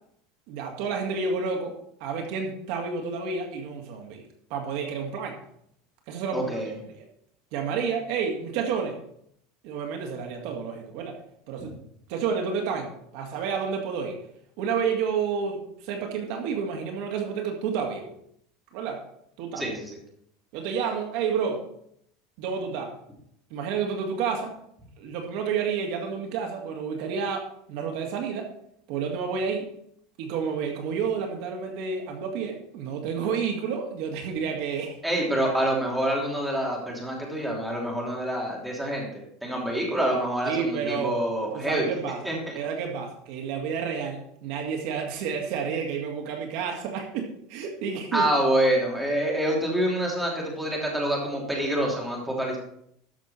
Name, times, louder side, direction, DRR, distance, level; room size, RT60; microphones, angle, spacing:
voice 1, 0.5-1.8 2.0-5.4 6.1-6.5 6.9-7.0 7.5-9.0 9.6-11.2 11.5-11.8 12.1-14.2 14.6-18.1 18.7-19.0 19.4-19.7 20.5-21.6 22.4-23.0 23.5-24.6 25.0-28.5 28.9-29.7 30.2-35.0 40.4-41.2 41.5-42.2 42.6-48.3, right 6 dB, 60° right, 2 dB, 1.9 m, -30 dB
voice 2, 6.3-6.7 19.6-19.9 35.0-39.1 39.4-41.9 42.2-42.4 48.1-52.6, right 1 dB, 5° right, -2 dB, 3.0 m, -26 dB
13.0 x 6.5 x 4.3 m, 0.71 s
supercardioid pair, 155°, 0 cm